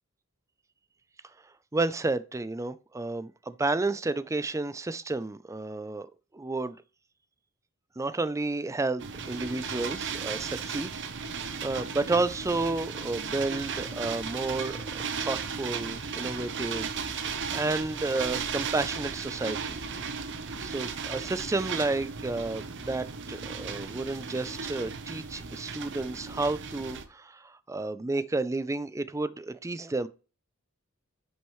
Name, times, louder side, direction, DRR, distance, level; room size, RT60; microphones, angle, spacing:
voice 1, 1.7-6.1 6.3-6.8 8.0-10.9 11.2-14.8 15.2-16.9 17.2-19.8 20.6-30.1, right 3 dB, 15° right, 0.4 m, -31 dB
sound 1, 9.0-27.0, right 5 dB, 60° right, 0.9 m, -35 dB
9.9 x 6.4 x 3.1 m
head